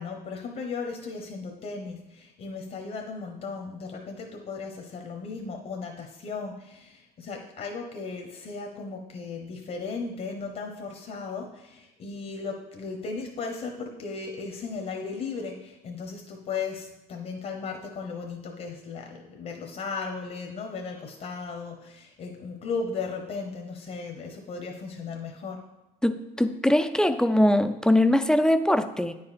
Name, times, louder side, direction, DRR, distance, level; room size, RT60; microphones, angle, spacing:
voice 1, 0.0-25.6, left 4 dB, 50° left, 3 dB, 1.1 m, -36 dB
voice 2, 26.0-29.1, left 1 dB, 5° left, 10 dB, 0.4 m, -22 dB
9.3 x 5.3 x 4.2 m, 0.97 s
cardioid pair, 110°, 17 cm